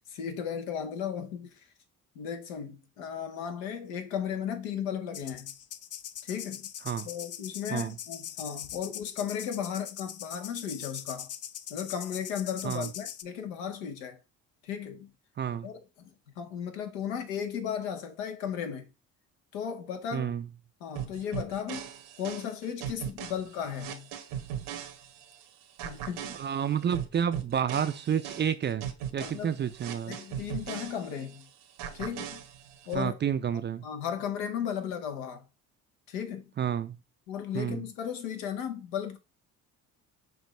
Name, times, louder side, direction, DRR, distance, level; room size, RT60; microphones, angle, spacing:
voice 1, 0.1-1.5 2.1-5.5 6.2-6.7 7.0-11.3 11.7-14.2 14.6-15.1 15.6-16.1 16.4-18.9 19.5-20.3 20.8-21.8 22.2-24.1 25.8-26.4 29.2-29.6 30.1-31.5 31.9-32.4 32.9-33.1 33.8-35.4 36.1-36.5 37.3-39.2, left 8 dB, 80° left, 0.9 m, -35 dB
sound 1, 5.1-13.2, left 10 dB, 40° left, 0.5 m, -41 dB
voice 2, 15.4-15.7 20.1-20.5 26.3-28.9 29.1-30.2 32.9-33.9 36.6-37.0 37.5-37.8, right 8 dB, 25° right, 0.4 m, -30 dB
sound 2, 21.0-25.4 25.8-31.4 31.8-33.0, right 9 dB, 70° right, 0.9 m, -39 dB
6.0 x 2.5 x 3.2 m
hypercardioid pair, 60°, 41 cm